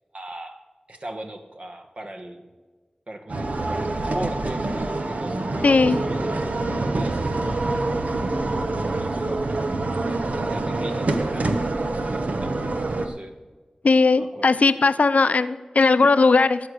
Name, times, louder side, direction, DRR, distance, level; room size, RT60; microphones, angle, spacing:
voice 1, 0.1-0.6 0.9-2.5 3.1-6.4 6.8-7.6 8.3-9.7 10.5-11.7 12.0-13.3 14.2-14.5, right 1 dB, 55° right, 5 dB, 1.4 m, -38 dB
sound 1, 3.3-13.1, right 2 dB, 90° right, 1.0 m, -26 dB
voice 2, 5.6-6.0 13.8-16.6, left 4 dB, 85° left, 13 dB, 0.5 m, -18 dB
13.0 x 7.8 x 6.5 m, 1.3 s
wide cardioid pair, 65°, 2 cm